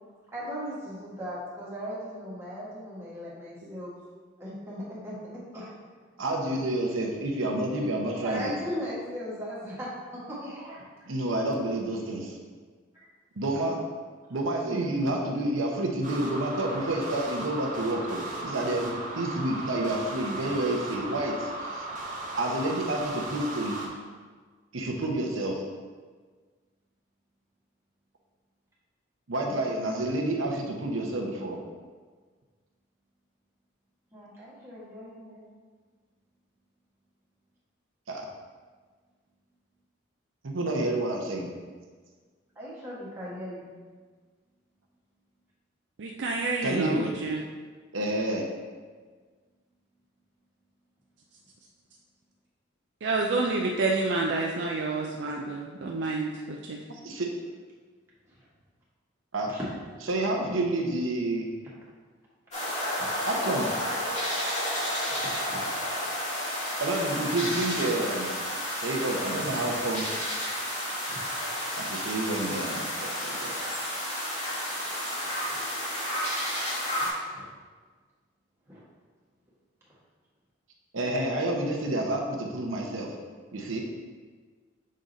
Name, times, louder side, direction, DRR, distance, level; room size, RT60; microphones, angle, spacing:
voice 1, 0.3-3.9 4.4-5.7 8.2-10.9 12.9-13.1 34.1-35.4 42.5-43.7 59.5-59.7 63.1-63.3 65.2-65.9 71.1-71.5 75.2-75.7 77.0-77.4 78.7-78.8, equal, 10° right, -9 dB, 1.6 m, -38 dB
voice 2, 6.2-8.5 11.1-12.4 13.4-13.8 14.3-21.9 22.4-23.8 24.7-25.6 29.3-31.6 38.1-38.2 40.4-41.5 46.6-47.1 47.9-48.4 57.0-57.3 59.3-59.5 60.1-61.5 63.3-63.7 66.8-68.3 68.7-70.1 71.8-73.5 80.9-83.1 83.5-83.8, right 1 dB, 80° right, 1 dB, 0.8 m, -29 dB
sound 1, 16.0-23.9, right 2 dB, 40° right, 0.9 m, -37 dB
voice 3, 46.0-47.4 53.0-56.8, right 3 dB, 55° right, 0 dB, 0.4 m, -29 dB
sound 2, 62.5-77.1, equal, 35° left, 1.7 m, -31 dB
6.4 x 3.8 x 4.1 m, 1.5 s
head